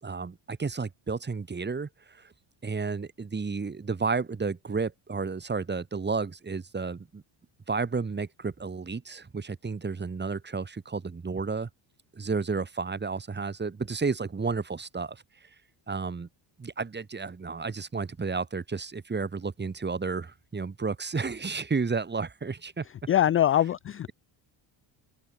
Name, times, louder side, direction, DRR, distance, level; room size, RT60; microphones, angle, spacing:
voice 1, 0.0-2.3 2.6-7.2 7.7-11.7 12.1-15.2 15.9-16.3 16.6-22.8, right 4 dB, 20° right, 4.9 m, -32 dB
voice 2, 23.1-24.1, left 11 dB, 30° left, 0.4 m, -23 dB
open air
cardioid pair, 130°, 50 cm